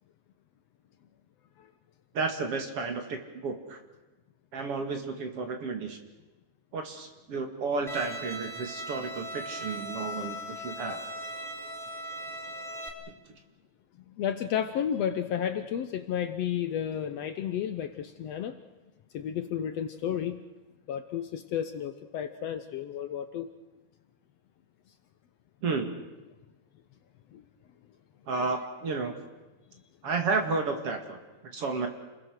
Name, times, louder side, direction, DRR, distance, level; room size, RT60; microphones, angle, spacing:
voice 1, 2.1-3.8 4.5-6.0 6.7-11.0 25.6-26.0 28.3-29.1 30.0-31.2 31.5-31.9, right 4 dB, 50° right, 5 dB, 2.9 m, -32 dB
Bowed string instrument, 7.9-12.9, equal, ahead, 2.4 m, -38 dB
voice 2, 14.1-18.6 19.1-20.4 20.9-23.5 27.3-27.4 28.3-28.5, left 9 dB, 70° left, 9 dB, 1.8 m, -32 dB
29.0 x 21.5 x 6.4 m, 1.1 s
omnidirectional pair, 3.5 m